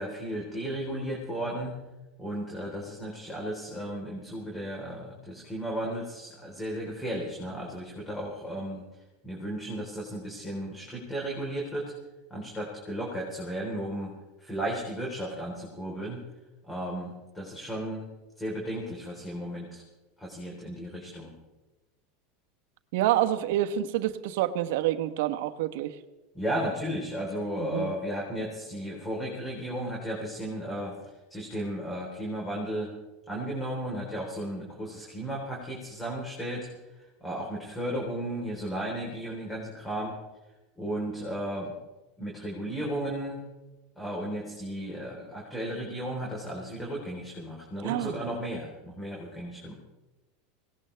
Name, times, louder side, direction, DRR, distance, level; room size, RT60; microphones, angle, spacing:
voice 1, 0.0-1.8 2.2-8.8 9.2-11.9 12.3-14.1 14.4-16.2 16.6-18.1 18.4-19.8 20.2-21.3 26.3-31.0 31.3-32.9 33.3-36.7 37.2-40.1 40.8-41.7 42.2-43.4 44.0-49.7, right 1 dB, 10° left, -2 dB, 4.0 m, -34 dB
voice 2, 22.9-26.0 27.7-27.9 47.8-48.1, right 12 dB, 70° right, 8 dB, 1.2 m, -27 dB
20.5 x 18.5 x 3.4 m, 1.1 s
supercardioid pair, 120°, 0 cm